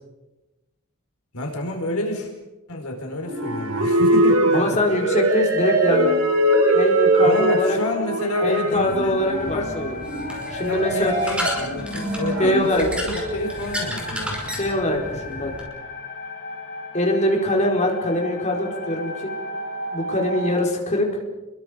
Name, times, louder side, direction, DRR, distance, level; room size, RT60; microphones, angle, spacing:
voice 1, 1.3-2.3 2.7-4.8 7.2-9.7 10.7-14.4, left 1 dB, 75° left, 2 dB, 4.8 m, -29 dB
sound 1, 3.2-12.6, right 1 dB, 70° right, 5.0 m, -21 dB
voice 2, 4.5-6.1 6.7-7.8 8.4-10.0 10.5-11.2 12.4-12.9 14.6-15.5 16.9-19.1 19.9-21.1, left 1 dB, 30° left, 1 dB, 4.5 m, -23 dB
sound 2, 6.9-20.6, left 2 dB, 50° left, 5.2 m, -36 dB
sound 3, 8.7-15.6, equal, 5° right, 5.3 m, -33 dB
29.0 x 22.5 x 5.2 m, 1.1 s
head